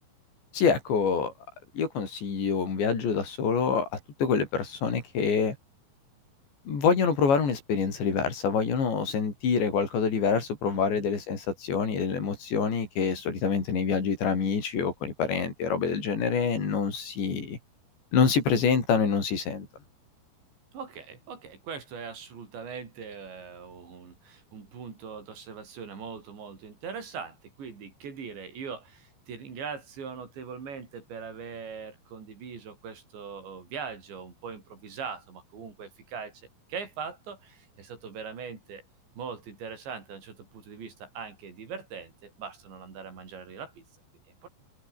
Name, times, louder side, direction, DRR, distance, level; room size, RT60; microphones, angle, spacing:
voice 1, 0.5-1.3 1.7-5.6 6.7-17.6 18.1-19.7, left 6 dB, 85° left, 8.0 m, -26 dB
voice 2, 10.6-11.1 20.7-36.4 36.7-38.9 39.2-43.8 44.3-44.5, right 6 dB, 85° right, 7.9 m, -41 dB
omnidirectional pair, 5.0 m